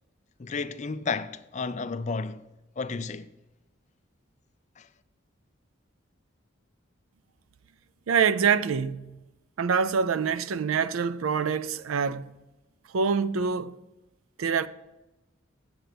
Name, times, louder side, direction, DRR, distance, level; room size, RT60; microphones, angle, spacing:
voice 1, 0.4-2.4 2.8-3.3 4.8-4.9, left 4 dB, 35° left, 0.4 m, -32 dB
voice 2, 8.1-9.2 9.6-12.3 12.9-13.8 14.4-14.7, right 6 dB, 85° right, 0.5 m, -25 dB
8.0 x 7.6 x 6.6 m
head